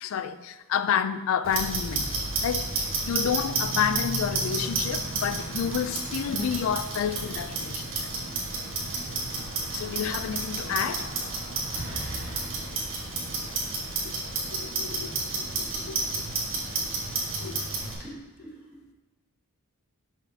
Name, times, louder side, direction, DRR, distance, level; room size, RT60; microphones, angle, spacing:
voice 1, 0.0-2.1 2.4-8.1 9.7-11.1 14.0-14.1 14.5-16.2 17.4-17.7, left 8 dB, 65° left, 0.3 m, -30 dB
Clock, 1.4-17.9, right 3 dB, 60° right, 1.6 m, -31 dB
voice 2, 18.0-18.9, right 2 dB, 10° right, 1.8 m, -42 dB
6.8 x 6.0 x 2.8 m
head